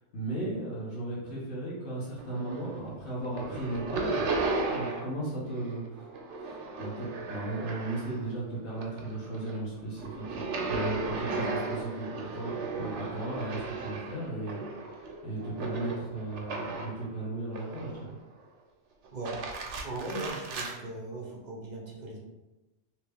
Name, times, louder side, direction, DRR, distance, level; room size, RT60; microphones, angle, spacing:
voice 1, 0.0-6.1 6.4-18.1, right 2 dB, 70° left, -7 dB, 1.4 m, -36 dB
sound 1, 2.2-2.9 3.2-5.2 5.5-8.3 8.7-17.0 17.5-18.2 19.0-20.8, right 3 dB, 80° right, 0.9 m, -35 dB
voice 2, 19.8-22.2, right 2 dB, 45° right, -2 dB, 0.7 m, -38 dB
3.0 x 2.9 x 3.3 m, 1.0 s
omnidirectional pair, 1.2 m